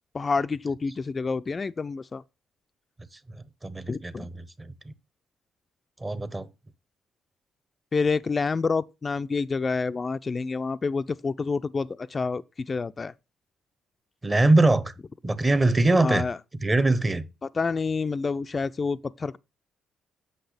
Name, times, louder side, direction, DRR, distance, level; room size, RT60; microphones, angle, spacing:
voice 1, 0.1-2.2 3.9-4.3 7.9-13.1 16.0-16.4 17.6-19.4, left 4 dB, 35° left, 0.3 m, -28 dB
voice 2, 3.6-4.7 6.0-6.5 14.2-14.9 15.2-16.2 16.6-17.3, right 2 dB, 20° right, 0.8 m, -22 dB
8.0 x 6.0 x 3.4 m
cardioid pair, 90°, 0 cm